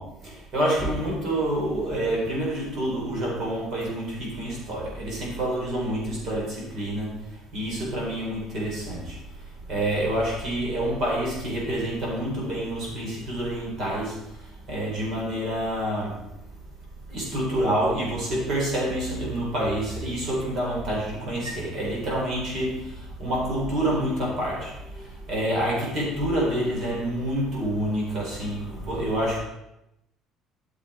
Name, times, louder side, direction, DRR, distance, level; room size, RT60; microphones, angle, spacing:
voice 1, 0.0-16.3 17.1-29.4, right 1 dB, 40° right, -3 dB, 4.4 m, -28 dB
13.0 x 7.4 x 4.5 m, 0.88 s
cardioid pair, 170°, 0 cm